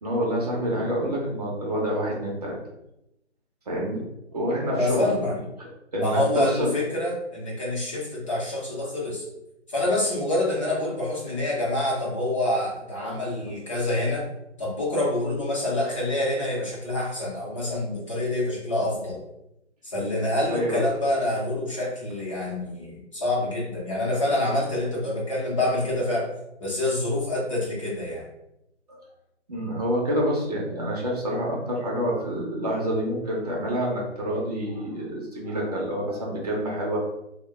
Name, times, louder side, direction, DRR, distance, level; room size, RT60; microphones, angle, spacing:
voice 1, 0.0-2.6 3.7-5.1 5.6-6.8 13.0-13.5 20.5-21.0 28.9-29.0 29.5-37.0, equal, 35° right, -3 dB, 0.6 m, -28 dB
voice 2, 4.7-5.4 6.0-9.2 9.7-14.3 14.6-19.2 19.8-26.3 26.6-28.2, left 1 dB, 25° left, -6 dB, 0.7 m, -26 dB
2.4 x 2.2 x 3.5 m, 0.85 s
figure-of-eight pair, 155°, 36 cm